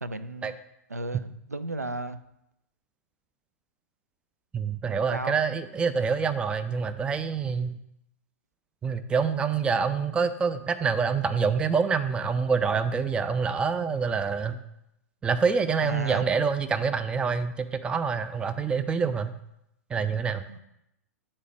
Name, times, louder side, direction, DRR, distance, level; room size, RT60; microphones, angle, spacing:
voice 1, 0.0-0.6 0.9-2.2 5.1-5.4 15.8-16.3 20.5-20.6, right 1 dB, 85° right, 11 dB, 0.4 m, -34 dB
voice 2, 4.5-7.8 8.8-14.6 15.2-19.3 19.9-20.4, right 5 dB, 10° right, 10 dB, 0.4 m, -26 dB
8.3 x 4.3 x 6.0 m, 0.81 s
figure-of-eight pair, 100°, 8 cm